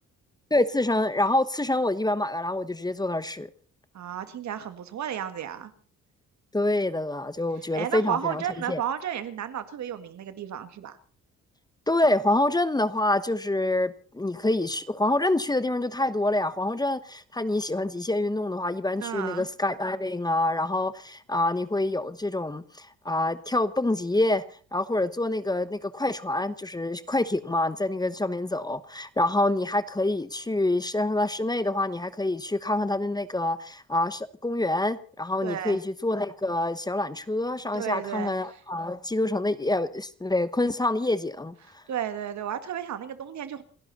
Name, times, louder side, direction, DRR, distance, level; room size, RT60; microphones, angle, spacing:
voice 1, 0.5-3.5 6.5-8.4 8.7-8.8 11.9-24.4 24.7-41.8, left 2 dB, 15° left, 1.0 m, -26 dB
voice 2, 3.9-5.7 7.7-11.0 19.0-19.5 35.4-35.8 37.7-38.3 41.9-43.6, right 10 dB, 65° right, 1.9 m, -33 dB
29.5 x 11.5 x 4.2 m
cardioid pair, 90°, 30 cm